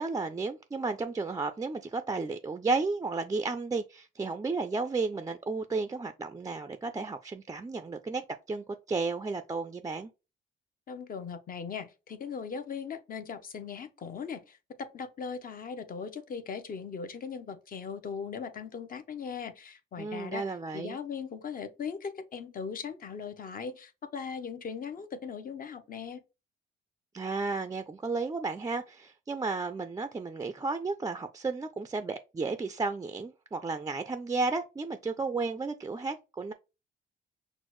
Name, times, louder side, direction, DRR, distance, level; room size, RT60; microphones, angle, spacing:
voice 1, 0.0-8.2 8.5-10.1 20.0-21.0 27.1-36.5, right 3 dB, 15° right, 0.3 m, -33 dB
voice 2, 10.9-20.4 20.7-26.2, left 6 dB, 45° left, 0.7 m, -39 dB
6.1 x 2.1 x 3.1 m
cardioid pair, 90°, 20 cm